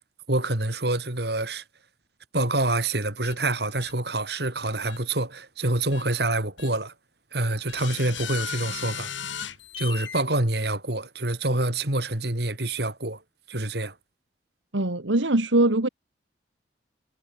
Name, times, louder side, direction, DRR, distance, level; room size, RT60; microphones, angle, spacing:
voice 1, 0.3-1.6 2.3-6.9 7.3-9.1 9.8-13.2 13.5-13.9, right 2 dB, 60° right, 3.5 m, -26 dB
sound 1, 3.2-3.3 3.8-3.9 4.9-5.0 5.9-6.0 6.6-6.7 7.7-10.2, left 8 dB, 90° left, 5.4 m, -36 dB
voice 2, 14.7-15.9, right 2 dB, 85° right, 2.0 m, -22 dB
head